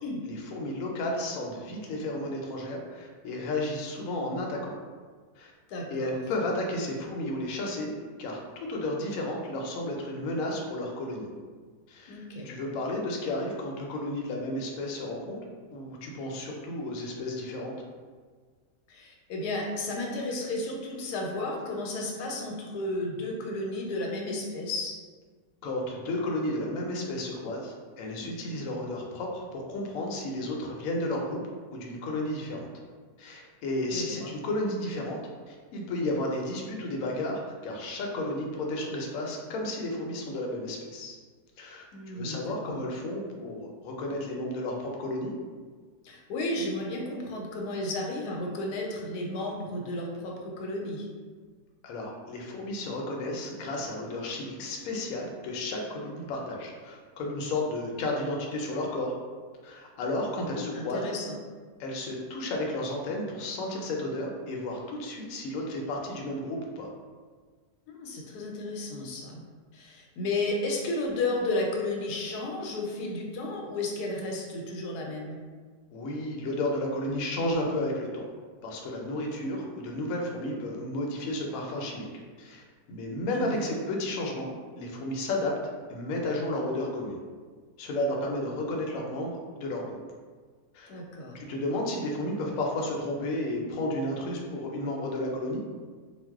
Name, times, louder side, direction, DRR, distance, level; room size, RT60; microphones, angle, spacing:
voice 1, 0.2-4.7 5.4-5.5 5.9-7.9 8.2-11.3 11.9-15.4 15.7-17.7 25.6-31.4 31.7-32.7 33.2-35.2 35.5-41.2 41.6-45.3 51.8-59.1 59.6-61.0 61.8-66.9 75.9-78.2 78.6-82.1 82.4-82.6 82.9-85.5 85.9-87.2 87.8-90.0 90.7-90.9 91.5-95.6, left 1 dB, 70° left, 0 dB, 0.9 m, -32 dB
voice 2, 5.7-6.2 12.1-12.5 18.9-24.9 28.2-28.3 33.9-34.3 41.9-42.9 46.0-51.1 60.5-61.3 67.9-69.4 69.7-75.4 83.4-83.8 90.9-91.4, left 2 dB, 90° left, 0 dB, 1.1 m, -33 dB
2.5 x 2.1 x 3.4 m, 1.5 s
omnidirectional pair, 1.7 m